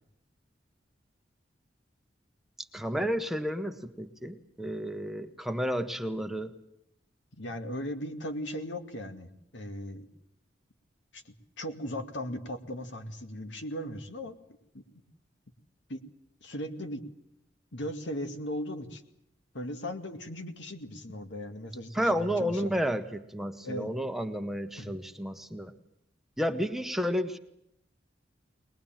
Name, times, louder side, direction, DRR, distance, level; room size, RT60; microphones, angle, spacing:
voice 1, 2.7-6.5 21.9-25.7 26.4-27.4, equal, ahead, 6 dB, 1.1 m, -31 dB
voice 2, 7.4-10.1 11.1-14.4 14.7-14.8 15.9-16.0 16.4-17.0 17.7-19.0 19.5-22.7 23.6-23.9 24.8-25.0, equal, 80° left, 7 dB, 2.3 m, -37 dB
22.0 x 21.0 x 9.0 m, 0.77 s
head